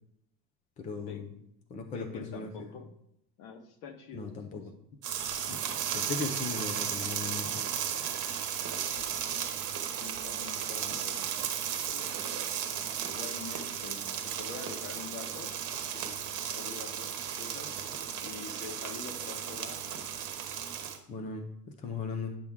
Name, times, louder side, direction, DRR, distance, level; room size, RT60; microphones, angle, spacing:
voice 1, 0.8-1.3 1.7-2.8 4.1-4.7 5.5-5.6 5.9-7.6 21.1-21.5 21.8-22.3, left 4 dB, 15° left, 3 dB, 0.4 m, -38 dB
voice 2, 1.9-2.9 3.4-4.6 10.0-11.3 11.7-12.2 13.1-15.6 15.9-16.1 16.5-19.8, left 5 dB, 50° left, 7 dB, 1.2 m, -46 dB
sound 1, 5.0-21.0, right 8 dB, 40° right, 1.2 m, -35 dB
9.9 x 6.0 x 3.6 m, 0.78 s
supercardioid pair, 150°, 50 cm